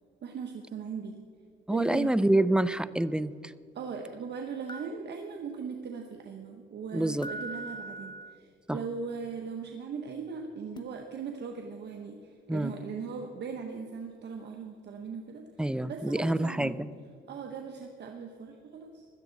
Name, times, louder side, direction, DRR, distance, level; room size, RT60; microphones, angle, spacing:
voice 1, 0.2-1.2 1.7-2.1 3.7-16.8 17.3-19.1, right 5 dB, 60° right, 3 dB, 1.2 m, -39 dB
voice 2, 1.7-3.5 6.9-7.3 8.7-8.8 12.5-12.7 15.6-16.9, right 1 dB, 5° right, 15 dB, 0.4 m, -27 dB
sound 1, 3.0-3.1 4.7-4.9 7.2-8.4 10.8-10.9, right 2 dB, 20° left, 0.8 m, -40 dB
16.5 x 13.0 x 4.1 m, 2.3 s
cardioid pair, 90°, 20 cm